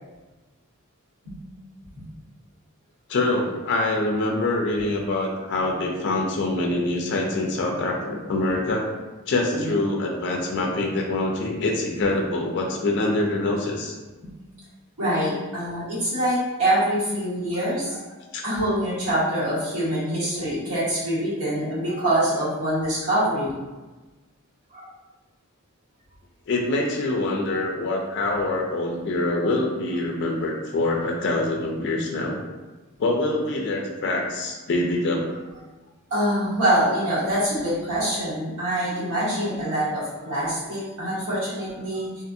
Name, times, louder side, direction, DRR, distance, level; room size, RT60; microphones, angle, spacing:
voice 1, 3.1-8.9 9.3-13.9 18.3-18.4 26.5-32.4 33.0-35.3, left 2 dB, 50° left, 1 dB, 0.4 m, -25 dB
voice 2, 15.0-18.2 18.4-23.5 24.7-24.8 36.1-42.2, right 1 dB, 80° right, -9 dB, 1.3 m, -25 dB
2.5 x 2.4 x 2.6 m, 1.2 s
head